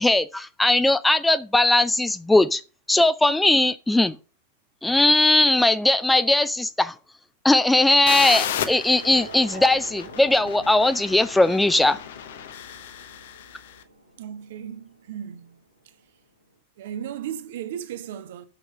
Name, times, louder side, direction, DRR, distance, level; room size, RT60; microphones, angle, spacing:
voice 1, 0.0-2.6 2.9-4.2 4.8-6.9 7.4-12.0, left 2 dB, 5° left, 0.4 m, -19 dB
sound 1, 8.1-13.7, left 9 dB, 55° left, 0.9 m, -33 dB
sound 2, 9.0-15.8, right 2 dB, 90° right, 1.9 m, -45 dB
voice 2, 14.2-15.6 15.8-16.0 16.8-18.4, right 9 dB, 55° right, 1.0 m, -35 dB
6.4 x 6.0 x 5.9 m
figure-of-eight pair, 90°, 0 cm